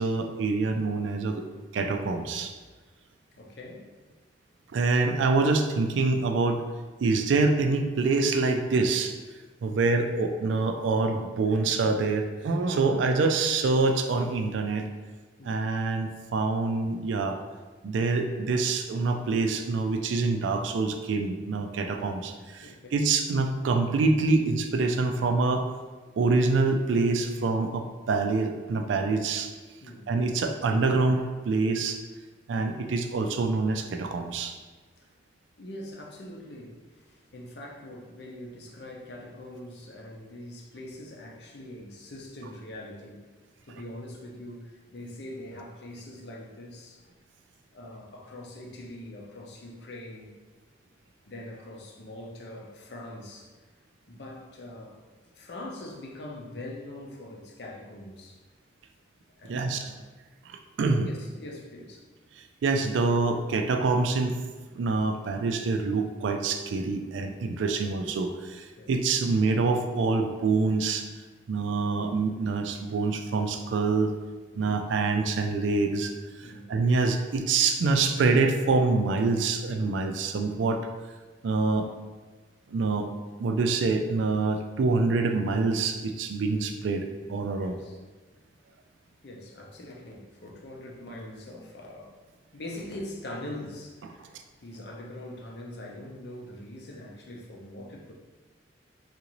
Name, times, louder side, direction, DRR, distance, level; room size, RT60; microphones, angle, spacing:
voice 1, 0.0-1.4 1.7-2.5 4.7-6.6 7.0-9.1 9.6-14.9 15.4-17.4 17.8-25.7 26.2-29.5 30.1-32.0 32.5-34.5 59.5-59.9 60.5-61.1 62.6-64.4 64.8-71.1 71.5-74.1 74.6-76.1 76.4-80.9 81.4-81.9 82.7-83.1 83.4-87.8, right 3 dB, 90° right, 6 dB, 0.4 m, -26 dB
voice 2, 3.4-3.9 15.4-15.6 22.6-23.0 29.8-30.1 35.6-43.2 43.7-47.0 47.7-50.3 51.3-53.5 54.1-55.0 55.3-58.4 59.4-60.0 61.1-62.1 68.7-68.9 74.6-74.7 76.4-76.7 87.6-88.0 89.2-92.2 92.5-94.3 94.6-98.1, left 1 dB, 65° left, -1 dB, 0.6 m, -43 dB
3.8 x 2.5 x 3.0 m, 1.4 s
head